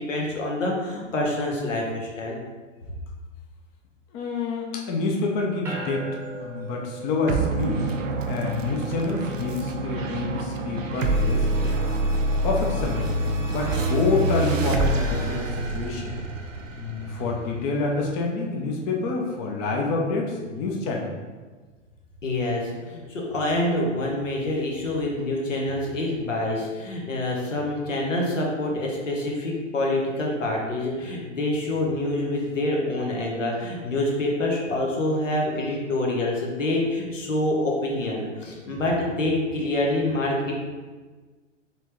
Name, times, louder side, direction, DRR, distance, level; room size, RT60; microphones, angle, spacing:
voice 1, 0.0-2.4 22.2-40.6, left 1 dB, 80° left, -1 dB, 1.1 m, -26 dB
voice 2, 4.1-7.8 8.3-11.7 12.4-13.1 13.5-16.2 16.8-21.1, left 3 dB, 20° left, -1 dB, 0.4 m, -27 dB
sound 1, 5.6-17.2, right 2 dB, 5° right, 0.8 m, -44 dB
sound 2, 7.3-18.1, right 1 dB, 85° right, 0.6 m, -26 dB
4.2 x 3.4 x 2.9 m, 1.3 s
figure-of-eight pair, 105°, 37 cm